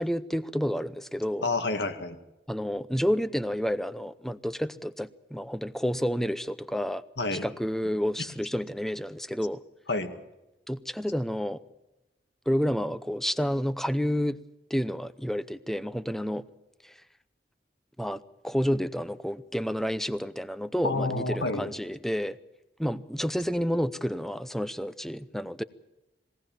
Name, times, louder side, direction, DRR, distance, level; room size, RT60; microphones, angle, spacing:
voice 1, 0.0-1.5 2.5-7.0 7.3-9.6 10.7-11.6 12.5-14.4 14.7-16.5 16.8-16.9 18.0-22.4 22.8-25.6, equal, ahead, 14 dB, 0.7 m, -30 dB
voice 2, 1.4-2.2 7.2-7.5 9.9-10.1 20.8-21.7, left 2 dB, 85° left, 7 dB, 2.2 m, -29 dB
22.0 x 17.0 x 7.3 m, 0.97 s
head